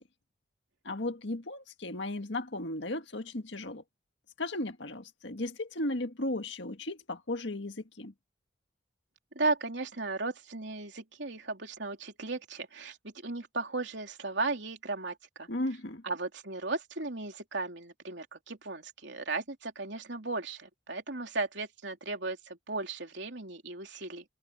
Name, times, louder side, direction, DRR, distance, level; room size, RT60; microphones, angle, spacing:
voice 1, 0.9-3.8 4.4-8.1 15.5-16.0, left 1 dB, 70° left, 1.9 m, -35 dB
voice 2, 9.3-13.0 13.2-15.5 16.0-24.2, right 3 dB, 65° right, 3.3 m, -35 dB
head